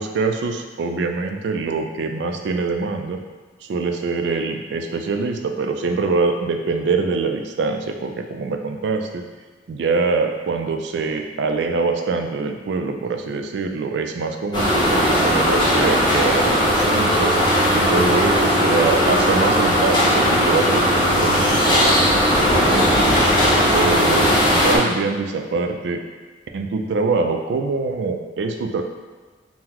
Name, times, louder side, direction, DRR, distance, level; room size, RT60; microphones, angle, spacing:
voice 1, 0.0-3.2 3.6-9.2 9.7-17.4 17.7-22.0 22.4-23.1 23.7-26.0 26.5-28.8, right 4 dB, 70° right, 4 dB, 0.3 m, -24 dB
sound 1, 14.5-24.8, equal, 25° left, 0.6 m, -17 dB
3.8 x 2.1 x 2.9 m, 1.3 s
head